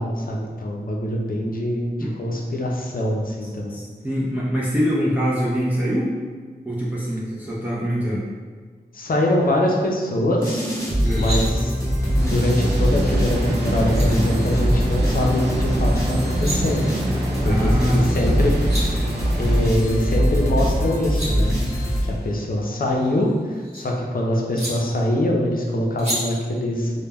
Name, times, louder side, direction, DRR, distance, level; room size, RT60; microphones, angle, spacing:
voice 1, 0.0-3.8 8.9-10.6 11.2-11.7 12.2-16.9 17.4-18.5 19.4-21.5 22.0-26.9, left 1 dB, 55° left, -1 dB, 0.5 m, -23 dB
voice 2, 3.4-6.1 6.6-8.2 11.0-11.3 17.4-18.4, equal, 10° right, -7 dB, 0.4 m, -24 dB
sound 1, 10.4-22.5, equal, 20° left, 0.8 m, -22 dB
sound 2, 10.9-11.4 13.4-13.5 13.9-14.1 16.1-16.6 18.2-18.3 18.5-18.8 20.8-21.3 22.8-23.8 24.6-24.7 26.0-26.2, right 1 dB, 40° right, 1.1 m, -31 dB
sound 3, 12.2-19.7, right 1 dB, 85° right, 0.4 m, -29 dB
2.1 x 2.1 x 3.3 m, 1.5 s
wide cardioid pair, 60°, 17 cm